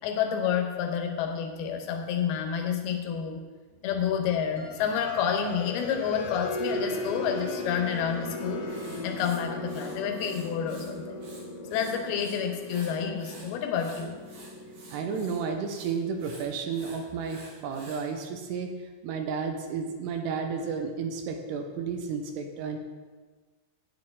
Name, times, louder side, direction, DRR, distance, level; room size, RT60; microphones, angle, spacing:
voice 1, 0.0-3.4 3.8-8.7 9.0-11.2 11.7-14.2, left 7 dB, 75° left, 4 dB, 2.8 m, -29 dB
sound 1, 4.6-17.1, left 2 dB, 90° left, 3.9 m, -37 dB
Writing, 8.7-10.9 11.2-12.4 12.7-18.1, right 2 dB, 60° right, 4.1 m, -50 dB
voice 2, 14.9-18.7 19.0-22.8, right 5 dB, 80° right, 4 dB, 2.9 m, -32 dB
11.5 x 9.5 x 3.7 m, 1.4 s
omnidirectional pair, 5.0 m